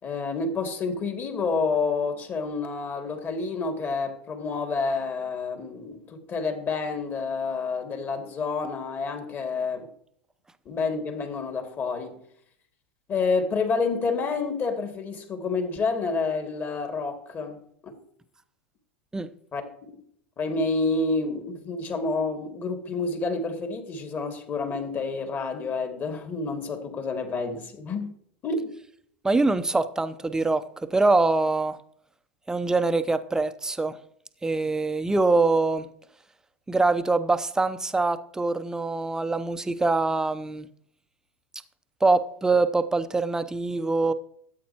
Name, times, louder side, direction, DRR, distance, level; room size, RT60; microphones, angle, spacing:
voice 1, 0.0-9.9 10.7-12.2 13.1-17.9 19.5-19.6 20.4-28.1 28.4-28.7, left 4 dB, 30° left, 2.3 m, -29 dB
voice 2, 29.2-31.8 32.5-34.0 34.4-35.9 36.7-40.7 42.0-44.1, right 3 dB, 10° right, 0.7 m, -24 dB
13.5 x 8.5 x 2.9 m
hypercardioid pair, 95°, 6 cm